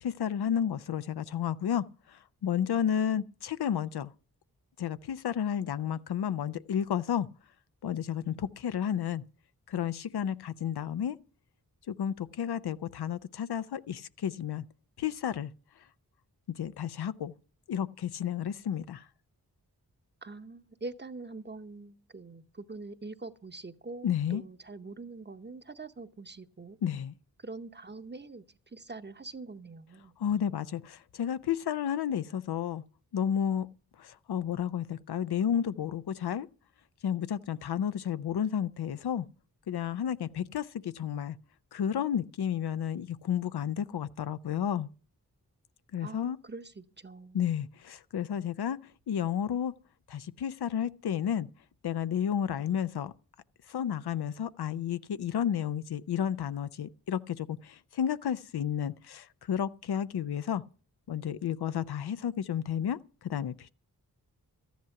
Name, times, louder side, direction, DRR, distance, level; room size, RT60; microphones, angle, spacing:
voice 1, 0.0-4.1 4.8-7.3 7.8-9.2 9.7-11.2 11.9-14.6 15.0-15.5 16.5-17.3 17.7-19.1 24.0-24.4 26.8-27.1 30.2-32.8 33.1-33.7 34.0-36.5 37.0-39.3 39.7-41.4 41.7-44.9 45.9-46.4 47.3-48.8 49.1-49.7 50.1-51.5 51.8-53.1 53.7-60.6 61.1-63.7, left 9 dB, 85° left, 0.6 m, -32 dB
voice 2, 20.2-26.8 27.4-30.1 46.0-47.4, right 3 dB, 30° right, 0.8 m, -44 dB
13.5 x 10.5 x 5.8 m
wide cardioid pair, 70°, 38 cm